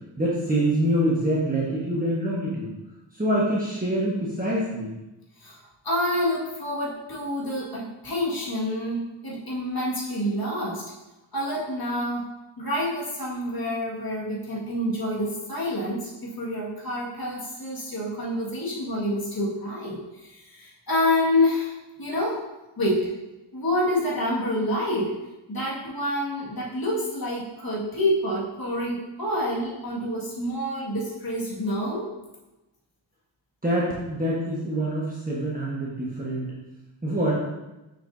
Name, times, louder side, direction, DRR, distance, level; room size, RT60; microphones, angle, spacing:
voice 1, 0.2-2.7 3.1-4.9 33.6-36.5 37.0-37.3, right 1 dB, 20° right, -7 dB, 1.3 m, -25 dB
voice 2, 5.8-10.9 11.3-21.7 22.0-22.4 22.8-23.2 23.5-25.2 25.5-32.1, left 1 dB, 50° left, -6 dB, 2.0 m, -27 dB
6.8 x 6.6 x 2.7 m, 1.0 s
wide cardioid pair, 90°, 46 cm